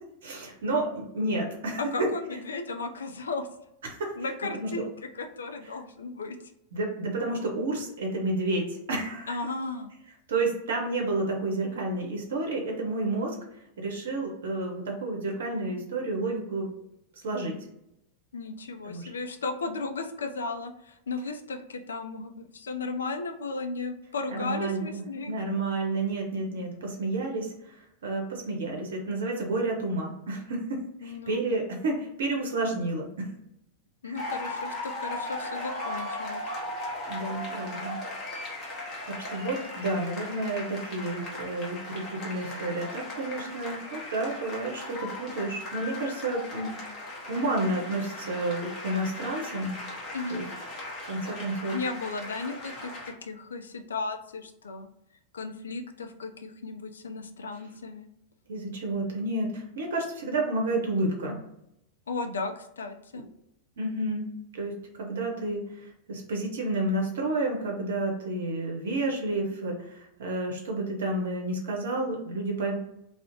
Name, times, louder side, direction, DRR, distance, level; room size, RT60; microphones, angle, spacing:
voice 1, 0.2-1.8 3.9-4.1 4.6-4.7 6.7-9.4 10.3-13.4 13.8-16.7 17.2-17.6 18.8-19.1 24.3-33.3 34.0-34.3 37.1-38.0 38.7-49.7 50.3-50.4 51.1-51.8 58.5-61.4 63.8-64.3 64.5-72.8, right 2 dB, 60° right, 0 dB, 0.6 m, -30 dB
voice 2, 1.8-3.5 4.1-6.4 9.3-9.9 18.3-25.3 31.0-31.4 34.0-36.4 50.1-50.4 51.7-54.9 55.3-58.1 62.1-63.3, left 3 dB, 70° left, 6 dB, 0.3 m, -35 dB
sound 1, 34.2-53.1, left 2 dB, 30° left, 0.8 m, -38 dB
2.4 x 2.0 x 2.7 m, 0.81 s
figure-of-eight pair, 90°, 0 cm